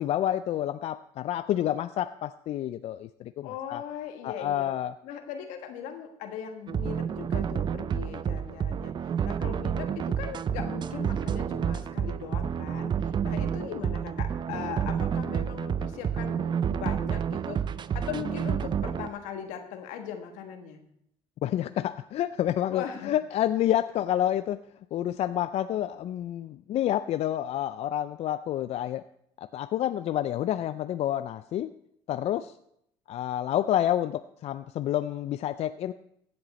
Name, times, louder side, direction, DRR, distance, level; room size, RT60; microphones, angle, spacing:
voice 1, 0.0-3.8 4.2-4.9 21.4-24.6 24.9-29.0 29.4-31.7 32.1-32.5 33.1-35.9, left 12 dB, 60° left, 12 dB, 0.4 m, -29 dB
voice 2, 3.4-4.7 5.0-17.7 17.9-20.8 22.7-23.1, left 8 dB, 85° left, 6 dB, 1.4 m, -39 dB
sound 1, 6.7-19.1, right 8 dB, 40° right, 0.4 m, -30 dB
15.0 x 7.8 x 4.1 m, 0.74 s
supercardioid pair, 80°, 12 cm